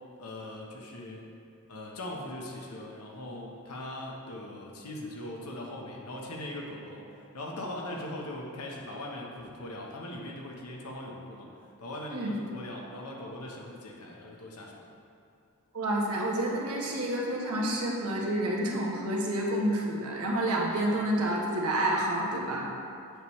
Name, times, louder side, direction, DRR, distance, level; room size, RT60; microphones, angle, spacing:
voice 1, 0.2-1.3 1.7-7.1 7.3-11.5 11.8-14.8, left 1 dB, 85° left, -1 dB, 1.2 m, -40 dB
voice 2, 15.7-22.7, right 1 dB, 80° right, -2 dB, 1.3 m, -29 dB
8.0 x 7.1 x 3.2 m, 2.6 s
head